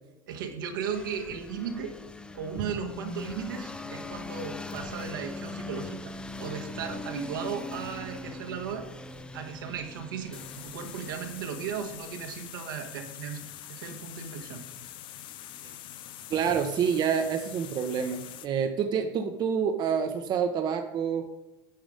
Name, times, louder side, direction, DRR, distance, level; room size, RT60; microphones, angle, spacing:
voice 1, 0.3-2.0 2.3-6.1 6.4-8.8 9.3-14.6, right 7 dB, 80° right, 3 dB, 1.4 m, -36 dB
sound 1, 0.8-12.5, left 2 dB, 10° left, 0.5 m, -41 dB
sound 2, 10.3-18.5, left 12 dB, 50° left, 0.6 m, -44 dB
voice 2, 16.3-21.3, right 7 dB, 40° right, 6 dB, 0.8 m, -28 dB
9.2 x 5.0 x 5.0 m, 1.0 s
hypercardioid pair, 90°, 11 cm